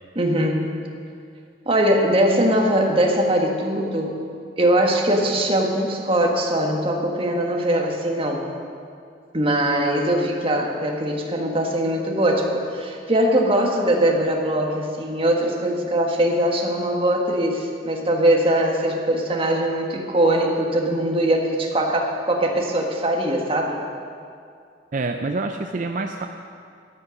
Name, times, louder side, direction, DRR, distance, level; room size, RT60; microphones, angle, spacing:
voice 1, 0.1-0.7 1.6-4.2 4.6-8.4 9.3-23.8, right 1 dB, 30° right, 0 dB, 1.6 m, -21 dB
voice 2, 24.9-26.3, right 3 dB, 50° right, 5 dB, 0.5 m, -26 dB
13.5 x 9.7 x 6.4 m, 2.3 s
head